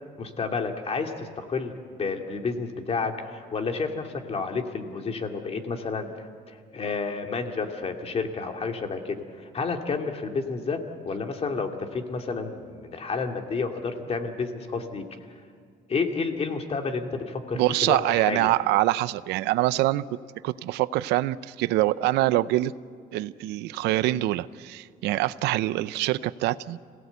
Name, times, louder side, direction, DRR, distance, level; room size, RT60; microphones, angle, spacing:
voice 1, 0.0-10.8 11.0-15.0 15.9-18.5, left 4 dB, 35° left, 4 dB, 2.4 m, -30 dB
voice 2, 17.5-20.2 20.4-22.7 23.1-26.8, right 16 dB, 90° right, 16 dB, 0.6 m, -25 dB
26.5 x 17.5 x 8.1 m, 2.1 s
cardioid pair, 110°, 17 cm